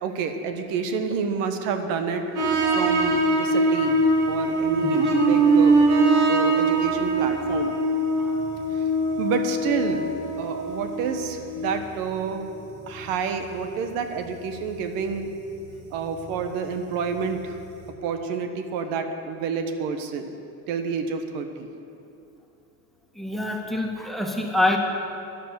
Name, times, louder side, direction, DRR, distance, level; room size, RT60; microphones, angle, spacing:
voice 1, 0.0-4.0 4.3-5.8 6.3-7.7 8.7-8.9 9.2-10.1 10.4-12.5 12.9-15.3 15.9-17.6 18.0-20.3 20.7-21.7, right 5 dB, 70° right, 7 dB, 1.3 m, -29 dB
sound 1, 2.4-12.6 13.0-13.1 16.3-16.4 16.7-16.8 17.1-17.2, right 2 dB, 55° right, 2.8 m, -22 dB
voice 2, 23.2-24.8, left 2 dB, ahead, 1 dB, 1.7 m, -26 dB
12.0 x 10.5 x 8.2 m, 2.8 s
cardioid pair, 125°, 35 cm